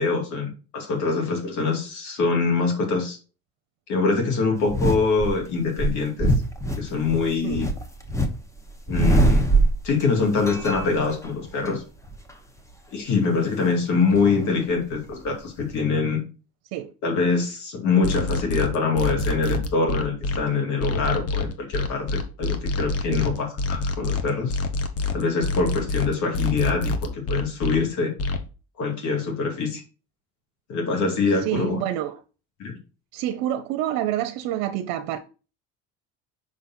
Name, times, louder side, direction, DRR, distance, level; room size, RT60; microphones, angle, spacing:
voice 1, 0.0-3.2 3.9-6.3 6.8-7.7 8.9-9.4 9.8-11.8 12.9-16.2 17.0-24.6 25.1-28.1 28.8-29.8 30.7-31.8 32.6-32.7, left 4 dB, 65° left, 2.3 m, -24 dB
sound 1, 4.7-5.3 5.8-8.3 8.6-10.1 10.4-11.7 12.0-12.3 14.0-15.3 15.6-15.7, right 1 dB, 10° left, 1.0 m, -22 dB
sound 2, 18.0-20.4 20.8-27.8 28.2-28.4, left 3 dB, 50° left, 1.2 m, -26 dB
voice 2, 31.4-32.2 33.1-35.2, right 12 dB, 85° right, 0.7 m, -27 dB
6.2 x 4.1 x 4.1 m
cardioid pair, 100°, 32 cm